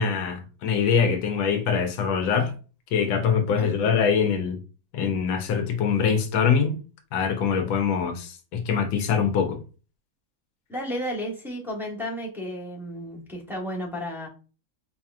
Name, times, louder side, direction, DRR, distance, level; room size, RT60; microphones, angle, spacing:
voice 1, 0.0-2.5 2.9-4.6 4.9-6.8 7.1-9.6, left 6 dB, 85° left, 1.5 m, -23 dB
voice 2, 3.6-4.0 10.7-14.3, equal, ahead, 0.6 m, -33 dB
4.7 x 2.8 x 2.4 m
omnidirectional pair, 2.1 m